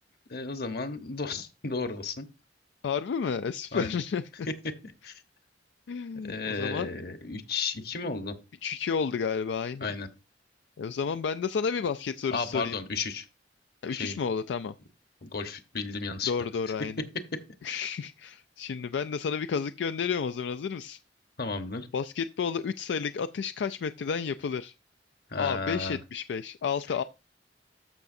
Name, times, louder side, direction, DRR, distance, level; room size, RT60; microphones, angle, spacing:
voice 1, 0.3-2.3 3.7-4.0 5.0-5.1 6.2-8.4 9.8-10.1 12.3-13.2 13.9-14.2 15.2-16.3 17.7-17.8 21.4-21.9 25.3-26.0, left 4 dB, 60° left, 1.1 m, -33 dB
voice 2, 2.8-4.5 5.9-6.9 8.6-9.9 10.8-12.8 13.8-14.7 16.3-17.0 17.6-21.0 21.9-24.7 25.4-27.0, left 6 dB, 90° left, 0.4 m, -31 dB
13.0 x 5.8 x 2.6 m
head